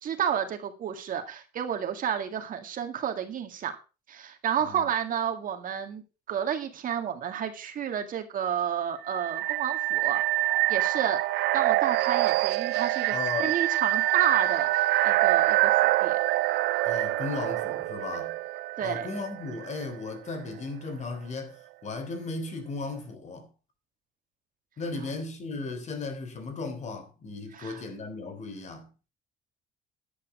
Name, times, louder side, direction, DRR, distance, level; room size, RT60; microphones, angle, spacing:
voice 1, 0.0-3.7 4.1-6.0 6.3-10.2 10.7-11.2 11.5-13.1 13.4-14.7 15.0-15.7 16.0-16.2 18.8-19.1 27.5-27.8, right 9 dB, 55° right, 2.0 m, -30 dB
sound 1, 9.1-19.8, right 17 dB, 75° right, 0.5 m, -26 dB
voice 2, 13.1-13.6 16.8-18.4 18.8-23.5 24.8-28.9, left 3 dB, 45° left, 3.4 m, -36 dB
10.5 x 8.6 x 5.0 m
cardioid pair, 110°, 17 cm